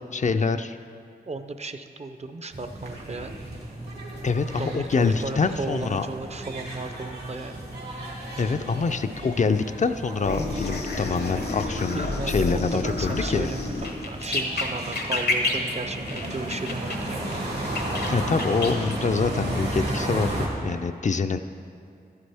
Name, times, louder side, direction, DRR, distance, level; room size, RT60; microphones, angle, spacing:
voice 1, 0.1-0.8 4.2-6.1 8.4-13.5 18.1-21.4, left 4 dB, 50° left, 9 dB, 0.4 m, -25 dB
voice 2, 1.3-3.3 4.6-7.6 11.7-12.5 12.7-17.3, right 3 dB, 40° right, 8 dB, 0.5 m, -35 dB
sound 1, 2.5-20.5, right 1 dB, 85° right, 2.0 m, -34 dB
sound 2, 10.2-17.0 17.3-19.0, left 2 dB, 75° left, 0.9 m, -30 dB
12.0 x 9.5 x 3.4 m, 2.3 s
wide cardioid pair, 90°, 17 cm